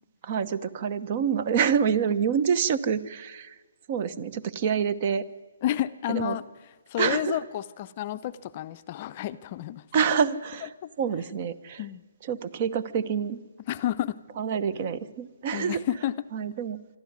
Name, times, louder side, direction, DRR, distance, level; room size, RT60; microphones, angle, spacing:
voice 1, 0.2-3.6 3.9-5.2 6.1-6.4 7.0-7.4 9.9-10.7 11.0-11.8 12.3-13.4 14.4-15.8 16.3-16.8, right 7 dB, 35° right, 16 dB, 0.9 m, -27 dB
voice 2, 5.6-6.4 6.9-9.8 10.8-10.9 11.8-12.0 13.7-14.2 15.5-16.2, left 12 dB, 35° left, 13 dB, 0.5 m, -30 dB
25.0 x 12.5 x 9.5 m, 1.4 s
figure-of-eight pair, 140°, 0 cm